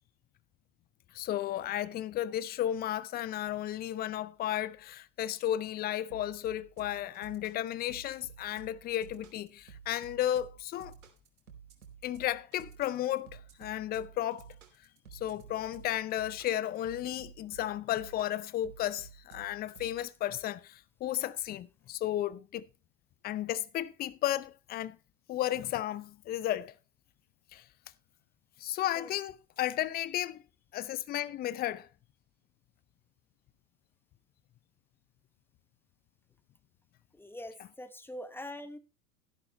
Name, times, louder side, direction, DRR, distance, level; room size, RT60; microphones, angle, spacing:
voice 1, 1.1-10.9 12.0-14.5 15.1-22.7 23.2-25.0 25.3-26.7 27.5-27.6 28.6-30.4 30.7-31.9, left 12 dB, 20° left, 0.6 m, -34 dB
sound 1, 6.1-20.4, right 8 dB, 80° right, 2.9 m, -52 dB
voice 2, 37.2-38.8, left 1 dB, 5° left, 1.0 m, -43 dB
13.0 x 11.0 x 3.0 m
hypercardioid pair, 100°, 44 cm